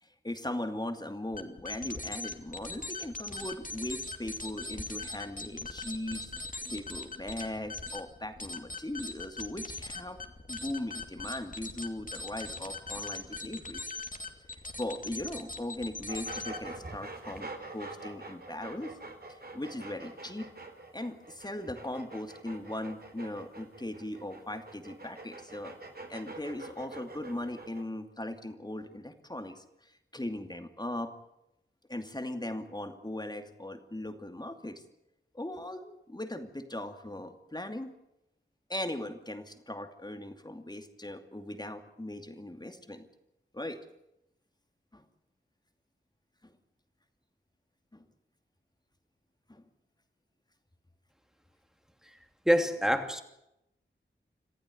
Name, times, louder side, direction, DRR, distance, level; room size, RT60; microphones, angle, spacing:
voice 1, 0.0-6.3 6.7-10.2 10.5-13.9 14.8-18.9 19.3-20.5 20.9-25.8 26.1-31.1 31.9-34.8 35.3-37.9 38.7-43.1 43.5-43.9 44.9-45.0 46.4-46.5 47.9-48.0 49.5-49.6, left 1 dB, 20° left, 7 dB, 2.6 m, -39 dB
sound 1, 1.3-16.8, left 3 dB, 40° left, 2.7 m, -41 dB
sound 2, 16.1-27.8, right 2 dB, 50° right, 4.1 m, -45 dB
voice 2, 52.5-53.2, equal, ahead, 6 dB, 2.8 m, -25 dB
27.0 x 15.0 x 9.4 m, 0.84 s
wide cardioid pair, 80°, 21 cm